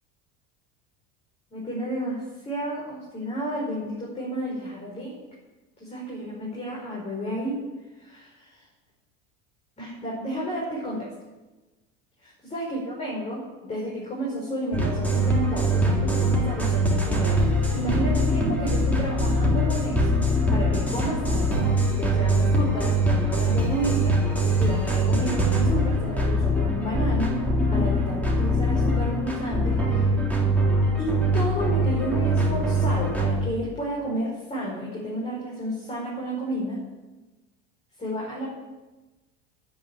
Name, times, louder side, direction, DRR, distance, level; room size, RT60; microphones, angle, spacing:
voice 1, 1.5-5.2 5.8-7.6 8.0-8.6 9.8-11.1 12.5-24.2 24.4-27.4 27.7-30.3 31.0-36.8 38.0-38.5, right 1 dB, 20° left, -5 dB, 5.4 m, -31 dB
sound 1, 14.7-33.3, right 1 dB, 5° left, 3.3 m, -23 dB
10.0 x 9.9 x 9.2 m, 1.1 s
supercardioid pair, 130°, 30 cm